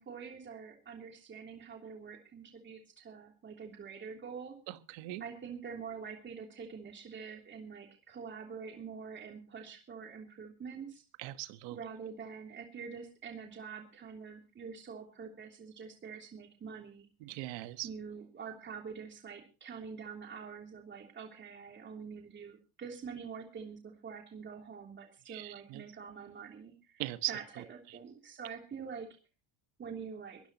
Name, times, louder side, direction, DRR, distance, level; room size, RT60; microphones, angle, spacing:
voice 1, 0.0-4.5 5.2-11.0 11.7-17.1 17.8-27.0 27.3-27.4 27.7-29.1 29.8-30.4, right 6 dB, 25° right, 1 dB, 3.1 m, -45 dB
voice 2, 4.7-5.2 11.2-11.8 17.2-17.9 25.3-25.8 27.0-28.0, right 18 dB, 80° right, 11 dB, 1.4 m, -40 dB
23.0 x 14.0 x 3.0 m, 0.33 s
cardioid pair, 170°, 45 cm